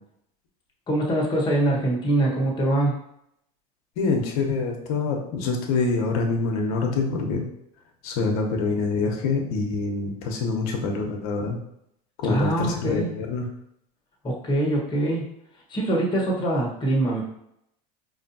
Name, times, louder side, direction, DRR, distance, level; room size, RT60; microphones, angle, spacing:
voice 1, 0.9-2.9 12.2-13.1 14.2-15.2 15.7-17.2, right 1 dB, 20° left, -2 dB, 1.2 m, -23 dB
voice 2, 4.0-7.4 8.0-11.6 12.2-13.5, left 4 dB, 70° left, 2 dB, 0.9 m, -25 dB
4.7 x 2.6 x 2.7 m, 0.77 s
supercardioid pair, 105°, 20 cm